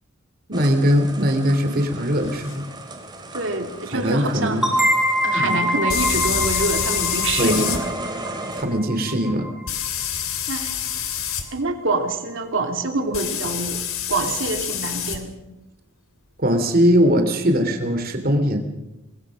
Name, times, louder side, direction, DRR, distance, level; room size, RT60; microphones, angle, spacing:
sound 1, 0.5-8.6, right 2 dB, 20° right, 3.2 m, -36 dB
voice 1, 0.5-2.6 3.9-4.7 5.3-5.6 7.4-7.6 8.6-9.5 16.4-18.6, equal, 45° right, 6 dB, 3.1 m, -20 dB
sound 2, 2.5-2.6 5.9-7.8 9.7-11.4 13.1-15.2, left 8 dB, 80° left, 3.0 m, -26 dB
voice 2, 3.3-4.7 5.2-7.9 8.2-8.3 10.5-10.8 11.5-13.8 14.1-15.3, right 3 dB, 65° right, 4 dB, 2.9 m, -26 dB
sound 3, 4.6-10.1, equal, ahead, 4.7 m, -25 dB
25.0 x 20.0 x 6.4 m, 0.99 s
head